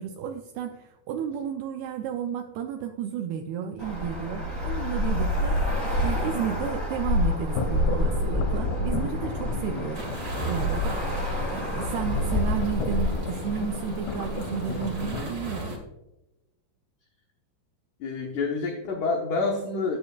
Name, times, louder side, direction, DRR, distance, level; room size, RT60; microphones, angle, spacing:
voice 1, 0.0-10.1 10.5-11.1 11.5-15.8, right 8 dB, 85° right, 4 dB, 2.3 m, -32 dB
Traffic noise roadway noise, 3.8-15.2, left 1 dB, 10° left, 1.3 m, -29 dB
sound 1, 7.5-15.3, left 4 dB, 70° left, 2.7 m, -33 dB
sound 2, 9.9-15.8, right 1 dB, 65° right, 0.9 m, -37 dB
voice 2, 12.0-12.3 15.0-15.3 18.0-20.0, left 3 dB, 90° left, 1 dB, 1.7 m, -29 dB
13.0 x 9.5 x 2.4 m, 0.98 s
omnidirectional pair, 5.2 m